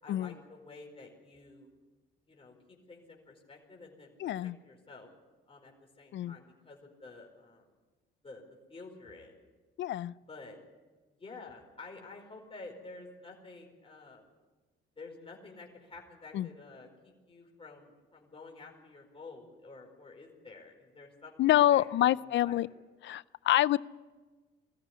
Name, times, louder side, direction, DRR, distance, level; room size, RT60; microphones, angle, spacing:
voice 1, 0.0-1.7 2.3-5.1 5.5-7.7 8.2-8.4 8.7-9.5 10.3-10.6 11.2-14.3 15.0-22.7, left 3 dB, 25° left, 0 dB, 4.8 m, -50 dB
voice 2, 4.2-4.6 6.1-6.4 9.8-10.1 16.3-16.5 21.4-22.7 23.0-23.8, left 13 dB, 70° left, 20 dB, 0.6 m, -26 dB
20.5 x 14.0 x 9.6 m, 1.3 s
cardioid pair, 90°, 20 cm